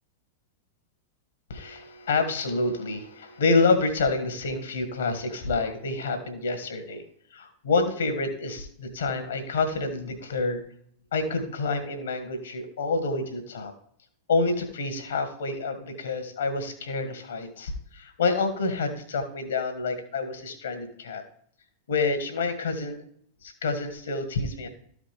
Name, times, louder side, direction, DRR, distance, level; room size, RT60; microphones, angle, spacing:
voice 1, 1.5-7.1 7.3-10.6 11.1-13.7 14.3-21.2 21.9-23.0 23.4-24.7, left 3 dB, 65° left, 7 dB, 1.7 m, -28 dB
13.5 x 5.1 x 3.5 m, 0.63 s
figure-of-eight pair, 90°, 0 cm